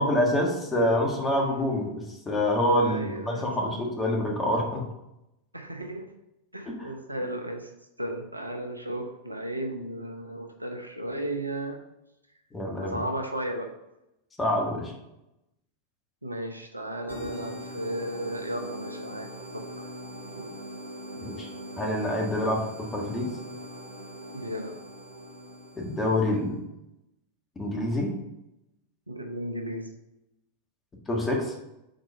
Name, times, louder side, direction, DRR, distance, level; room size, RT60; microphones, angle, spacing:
voice 1, 0.0-4.9 6.7-6.8 12.5-13.0 14.4-14.9 21.2-21.5 21.8-23.3 25.8-26.6 27.5-28.1 31.1-31.5, left 1 dB, 15° left, 0 dB, 1.5 m, -26 dB
voice 2, 2.8-3.8 5.5-6.0 6.5-7.7 8.0-11.8 12.8-13.7 16.2-19.3 19.5-19.9 20.3-20.5 24.3-24.8 29.1-29.9, right 1 dB, 85° right, 4 dB, 0.8 m, -34 dB
sound 1, 17.1-26.4, equal, 85° left, 1.0 m, -41 dB
5.2 x 4.3 x 5.6 m, 0.89 s
figure-of-eight pair, 90°, 0 cm